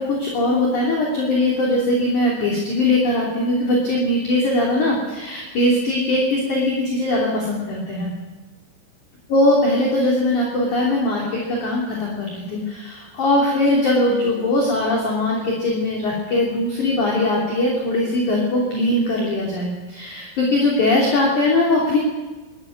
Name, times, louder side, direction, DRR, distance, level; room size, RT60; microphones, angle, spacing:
voice 1, 0.0-8.1 9.3-22.0, left 1 dB, 40° left, -3 dB, 4.0 m, -20 dB
20.5 x 13.5 x 9.4 m, 1.2 s
omnidirectional pair, 5.9 m